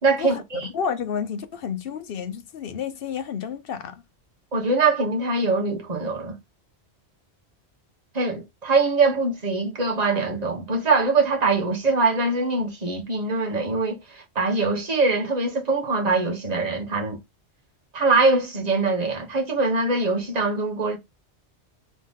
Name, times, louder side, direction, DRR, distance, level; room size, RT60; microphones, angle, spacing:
voice 1, 0.0-0.7 4.5-6.3 8.1-17.2 17.9-21.0, right 3 dB, 35° right, 1.1 m, -23 dB
voice 2, 0.7-4.0, left 7 dB, 60° left, 0.8 m, -30 dB
3.8 x 3.1 x 3.5 m
omnidirectional pair, 1.2 m